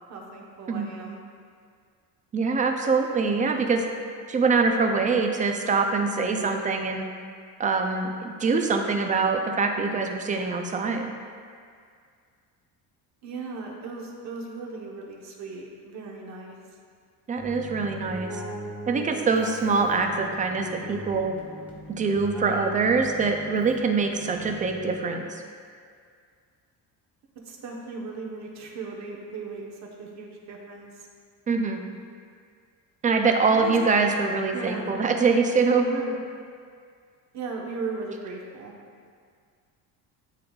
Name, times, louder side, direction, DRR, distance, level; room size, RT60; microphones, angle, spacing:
voice 1, 0.1-1.2 13.2-16.6 27.4-31.1 33.3-33.8 34.5-34.9 35.7-36.1 37.3-38.7, right 4 dB, 45° right, -1 dB, 1.0 m, -37 dB
voice 2, 2.3-3.8 4.3-7.0 7.6-11.1 17.3-18.3 18.9-21.3 21.9-25.4 31.5-31.8 33.0-35.9, right 4 dB, 20° right, 4 dB, 0.4 m, -24 dB
Keyboard (musical), 17.4-25.2, right 1 dB, 5° right, 1.3 m, -40 dB
11.5 x 3.8 x 2.3 m, 2.1 s
cardioid pair, 135°, 38 cm